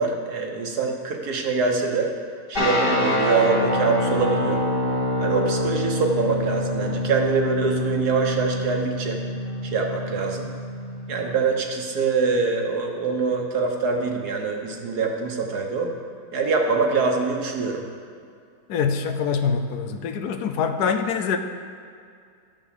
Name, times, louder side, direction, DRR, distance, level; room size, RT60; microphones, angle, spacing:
voice 1, 0.0-2.1 2.5-4.6 5.2-9.2 9.6-10.5 11.1-15.9 16.3-17.8, right 4 dB, 70° right, 2 dB, 1.7 m, -24 dB
sound 1, 2.5-11.4, left 1 dB, 30° left, 1.9 m, -26 dB
voice 2, 18.7-21.4, left 6 dB, 75° left, 7 dB, 1.2 m, -24 dB
12.0 x 6.0 x 6.7 m, 2.3 s
omnidirectional pair, 1.8 m